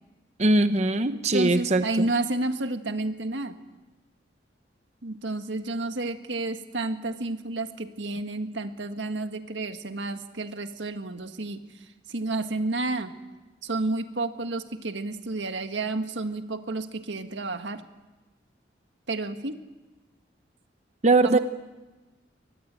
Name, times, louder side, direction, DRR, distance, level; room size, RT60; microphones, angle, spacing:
voice 1, 0.4-2.1 21.0-21.4, right 2 dB, 40° right, 10 dB, 0.9 m, -21 dB
voice 2, 1.1-3.6 5.0-13.1 13.6-17.8 19.1-19.6 21.2-21.4, right 2 dB, 90° right, 7 dB, 1.7 m, -31 dB
24.0 x 19.5 x 9.0 m, 1.1 s
head